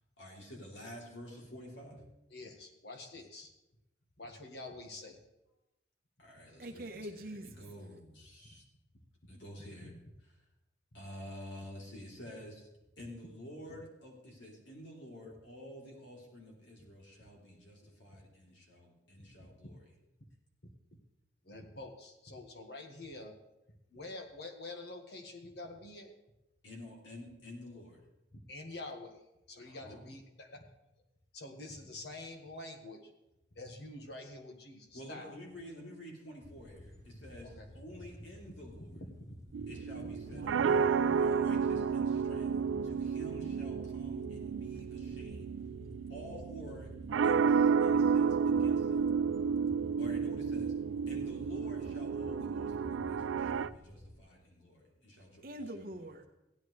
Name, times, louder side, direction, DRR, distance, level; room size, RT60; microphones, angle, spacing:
voice 1, 0.2-2.0 6.2-7.2 7.6-8.6 9.3-9.9 10.9-12.7 13.0-19.8 26.6-28.0 29.6-30.0 34.9-38.9 39.7-40.9 41.2-42.6 42.8-45.5 46.1-46.9 47.2-49.1 50.0-50.7 51.1-55.4 55.7-55.8, equal, 80° left, -2 dB, 3.1 m, -49 dB
voice 2, 2.3-3.5 4.2-5.2 8.4-8.6 13.7-13.8 19.2-19.3 21.4-23.4 23.9-26.1 28.3-29.2 29.5-30.6 31.3-33.1 33.5-35.4 37.1-37.2 37.4-37.7 38.5-38.6 38.9-39.3 39.9-40.8, left 2 dB, 60° left, 4 dB, 1.5 m, -47 dB
voice 3, 6.6-7.6 40.2-41.5 55.3-56.2, right 1 dB, 50° right, 4 dB, 1.1 m, -44 dB
sound 1, 36.4-54.2, left 1 dB, 15° left, 0.8 m, -52 dB
sound 2, 39.5-53.7, right 6 dB, 85° right, 0.3 m, -31 dB
16.0 x 11.0 x 3.2 m, 0.94 s
head